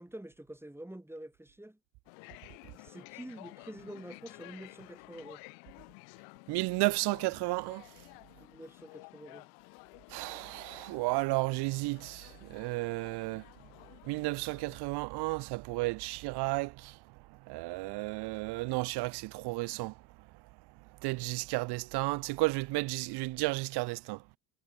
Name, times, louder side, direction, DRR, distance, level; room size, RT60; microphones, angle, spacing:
voice 1, 0.0-1.8 2.7-5.4 8.4-9.5, right 1 dB, 5° right, 2.1 m, -47 dB
sound 1, 2.1-14.8, left 40 dB or more, 75° left, 3.2 m, -53 dB
voice 2, 6.5-7.8 10.1-13.4 14.1-17.0 17.5-19.9 21.0-24.2, right 23 dB, 55° right, 0.5 m, -33 dB
hypercardioid pair, 70°, 50 cm